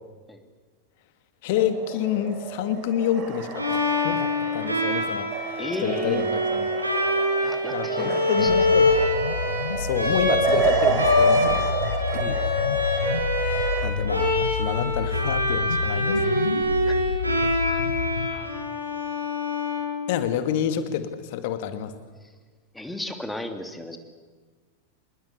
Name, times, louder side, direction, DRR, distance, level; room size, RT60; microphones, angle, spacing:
voice 1, 1.4-6.7 7.7-8.9 9.8-11.7 12.1-12.2 13.8-16.4 20.1-21.9, left 9 dB, 50° left, 9 dB, 2.3 m, -28 dB
sound 1, 1.5-13.9, right 8 dB, 35° right, 3.8 m, -31 dB
Bowed string instrument, 3.6-20.5, left 2 dB, 85° right, 6.4 m, -25 dB
voice 2, 5.6-6.2 7.4-8.5 12.2-12.4 16.9-17.0 18.3-18.6 22.7-24.0, left 1 dB, 5° left, 6 dB, 2.8 m, -35 dB
sound 2, 8.4-18.3, left 5 dB, 70° left, 1.5 m, -29 dB
27.0 x 21.0 x 8.5 m, 1.4 s
figure-of-eight pair, 90°, 0 cm